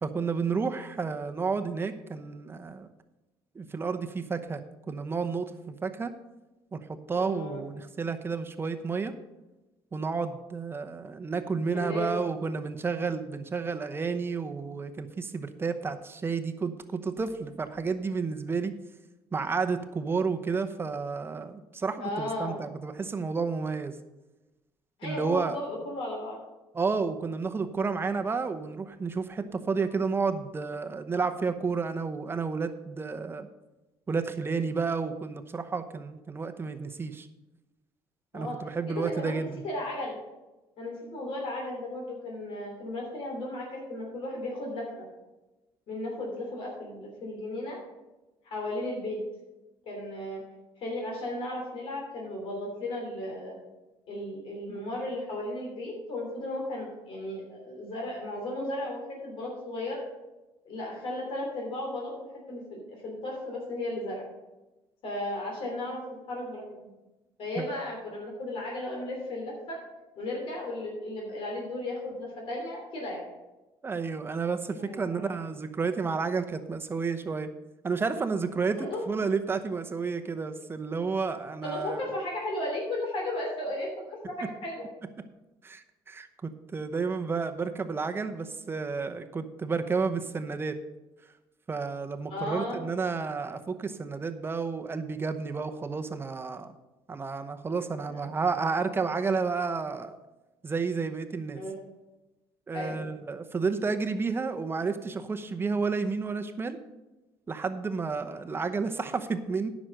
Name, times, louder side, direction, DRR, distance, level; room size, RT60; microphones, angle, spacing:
voice 1, 0.0-2.9 3.5-4.6 4.9-6.1 6.7-6.8 7.1-9.1 9.9-18.7 19.3-24.0 25.0-25.6 26.7-33.5 34.1-37.3 38.3-39.6 67.6-67.7 73.8-77.5 77.8-82.0 85.6-90.7 91.7-96.7 97.1-100.2 100.6-101.6 102.7-106.8 107.5-109.7, right 4 dB, 25° right, 8 dB, 0.8 m, -31 dB
voice 2, 7.1-7.6 11.7-12.2 22.0-22.6 25.0-26.4 38.3-38.6 38.9-40.2 40.8-44.9 45.9-47.8 48.4-49.2 49.8-50.4 50.8-53.6 54.1-60.0 60.6-62.1 62.5-64.2 65.0-66.0 66.3-66.6 67.4-69.8 70.2-73.2 74.8-75.4 78.8-79.0 81.6-84.8 92.3-92.8 98.1-98.3 101.5-101.7 102.7-103.0, left 1 dB, 65° left, -1 dB, 3.0 m, -35 dB
10.0 x 6.2 x 6.4 m, 1.1 s
cardioid pair, 115°, 10 cm